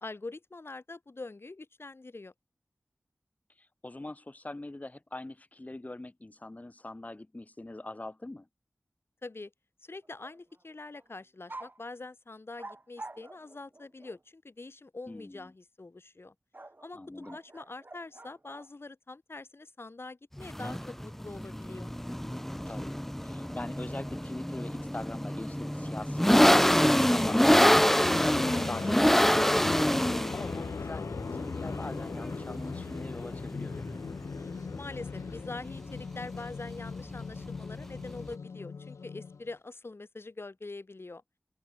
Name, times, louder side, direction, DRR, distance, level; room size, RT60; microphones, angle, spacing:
voice 1, 0.0-2.3 9.2-9.5 9.8-16.3 16.8-21.9 34.8-41.2, left 3 dB, 55° left, 1.6 m, -44 dB
voice 2, 3.5-8.5 15.1-15.5 16.9-17.4 22.7-23.0 23.2-29.8 30.1-34.0, left 2 dB, 30° left, 1.2 m, -43 dB
sound 1, 10.0-10.6 10.9-11.1 11.5-11.8 12.6-14.2 16.5-18.7 20.6-21.2, right 2 dB, 40° right, 3.7 m, -48 dB
sound 2, 20.4-38.3, equal, 5° left, 0.6 m, -27 dB
sound 3, 26.2-39.5, left 5 dB, 85° left, 0.4 m, -39 dB
open air
cardioid pair, 45°, 5 cm